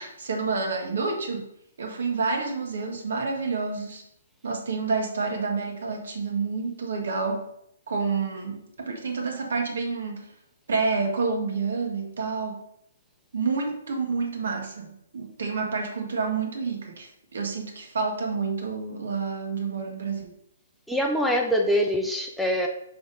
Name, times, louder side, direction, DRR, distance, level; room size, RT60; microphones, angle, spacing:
voice 1, 0.0-1.4 1.8-4.0 4.4-7.4 7.9-10.3 10.7-12.6 13.3-20.3, right 4 dB, 75° right, 2 dB, 1.7 m, -29 dB
voice 2, 20.9-22.7, equal, ahead, 1 dB, 0.5 m, -24 dB
6.0 x 3.7 x 5.4 m, 0.76 s
hypercardioid pair, 155°, 0 cm